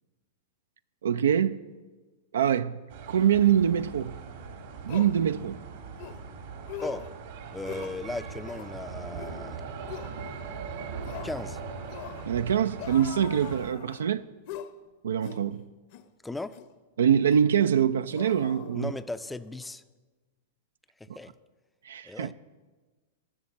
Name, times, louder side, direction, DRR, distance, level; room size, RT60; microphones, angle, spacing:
voice 1, 1.0-1.6 2.3-2.8 3.1-4.1 4.9-5.6 12.3-14.2 15.0-15.6 17.0-18.9 21.8-22.3, right 9 dB, 85° right, 0.3 m, -24 dB
sound 1, 2.9-13.7, right 5 dB, 70° right, 1.8 m, -40 dB
sound 2, 4.2-4.3 4.9-5.1 6.0-6.2 6.7-7.1 7.6-8.0 8.4-8.7 9.1-9.4 9.9-10.1 11.0-11.4 11.9-12.3 12.8-14.0 14.5-14.7 15.2-15.4 15.9-16.1 16.5-16.7 17.3-17.5 18.1-19.2 19.5-19.7, left 10 dB, 55° left, 0.8 m, -42 dB
voice 2, 7.5-9.6 11.2-11.6 16.2-16.6 18.7-19.8 21.0-21.3 22.0-22.3, left 2 dB, 5° left, 0.4 m, -36 dB
12.5 x 6.5 x 7.1 m
hypercardioid pair, 125°, 0 cm